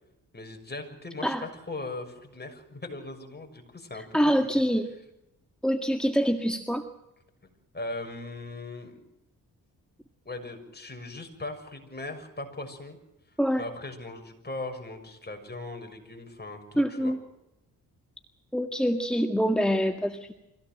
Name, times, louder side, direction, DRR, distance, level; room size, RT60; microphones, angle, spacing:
voice 1, 0.3-4.2 7.7-9.0 10.2-13.0 13.6-17.1, left 2 dB, 25° left, 4 dB, 6.5 m, -39 dB
voice 2, 3.9-4.9 5.6-6.9 13.4-13.6 16.8-17.2 18.5-20.3, equal, ahead, 6 dB, 1.9 m, -25 dB
24.5 x 17.0 x 7.8 m, 0.92 s
supercardioid pair, 50°, 38 cm